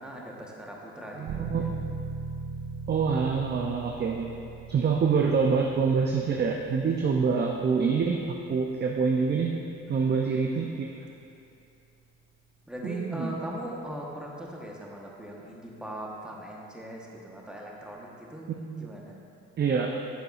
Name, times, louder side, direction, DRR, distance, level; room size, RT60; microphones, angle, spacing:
voice 1, 0.0-1.8 9.9-10.3 12.7-18.5 18.8-19.1, equal, 5° right, -3 dB, 1.1 m, -40 dB
voice 2, 1.2-1.7 2.9-4.3 4.7-9.5 9.9-10.9 12.8-13.4 18.5-18.9 19.6-20.0, right 5 dB, 35° right, 2 dB, 0.5 m, -26 dB
sound 1, 1.3-11.8, right 4 dB, 70° right, 0.8 m, -41 dB
9.1 x 6.6 x 2.4 m, 2.6 s
cardioid pair, 90°, 30 cm